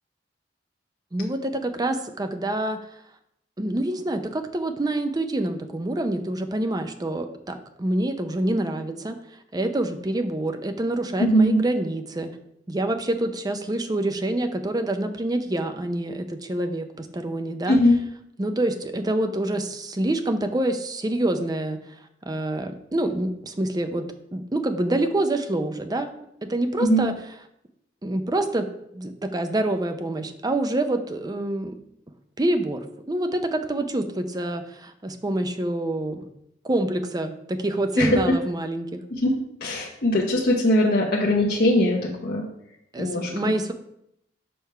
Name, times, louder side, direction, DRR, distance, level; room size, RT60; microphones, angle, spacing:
voice 1, 1.1-2.8 3.6-9.2 9.5-12.3 12.7-17.8 18.4-21.8 22.3-24.1 24.3-26.1 26.4-27.1 28.0-28.7 28.9-31.7 32.4-36.3 36.6-39.0 42.9-43.7, right 1 dB, 20° right, 8 dB, 0.5 m, -26 dB
voice 2, 11.2-11.6 17.7-18.0 26.8-27.0 38.0-38.1 39.1-39.3 39.6-42.4 43.0-43.5, left 1 dB, 55° left, -4 dB, 0.9 m, -20 dB
6.5 x 3.4 x 5.6 m, 0.76 s
head